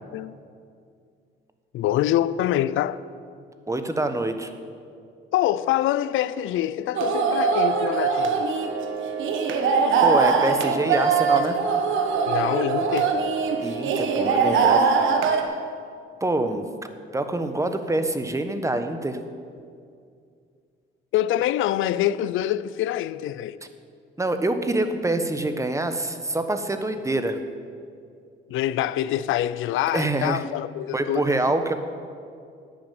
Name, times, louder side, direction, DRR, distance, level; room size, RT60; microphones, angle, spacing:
voice 1, 1.7-3.0 5.3-8.5 12.3-13.3 21.1-23.6 28.5-31.2, left 12 dB, 85° left, 0.5 m, -25 dB
voice 2, 3.7-4.5 10.0-11.6 13.6-14.9 16.2-16.6 17.1-19.2 24.2-27.4 29.9-30.4 30.9-31.7, right 2 dB, 15° right, 1.2 m, -25 dB
sound 1, 7.0-15.4, right 5 dB, 80° right, 1.4 m, -22 dB
11.0 x 8.9 x 9.2 m
cardioid pair, 90°, 20 cm